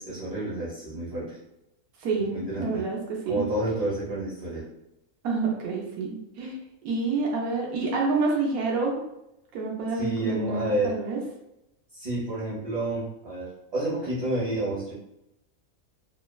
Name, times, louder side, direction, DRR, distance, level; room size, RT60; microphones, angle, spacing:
voice 1, 0.0-1.4 2.3-2.8 3.3-4.6 9.9-11.0 11.9-14.9, right 1 dB, 35° right, -10 dB, 0.8 m, -30 dB
voice 2, 2.0-3.5 5.2-6.6 6.8-9.0 9.5-11.2, right 3 dB, 85° right, -1 dB, 1.1 m, -28 dB
3.1 x 2.0 x 2.2 m, 0.87 s
omnidirectional pair, 1.5 m